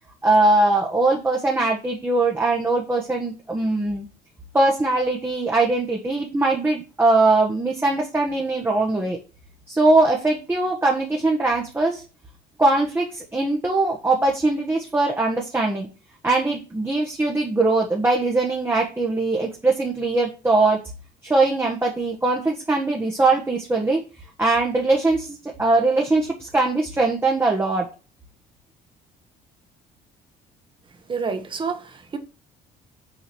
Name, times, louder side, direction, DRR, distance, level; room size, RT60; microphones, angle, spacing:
voice 1, 0.2-4.1 4.5-9.2 9.7-12.0 12.6-15.9 16.2-20.8 21.2-24.0 24.4-27.9, right 2 dB, 15° right, 1.4 m, -21 dB
voice 2, 31.1-32.2, right 5 dB, 30° right, 1.5 m, -28 dB
6.8 x 4.0 x 6.2 m
cardioid pair, 110°, 17 cm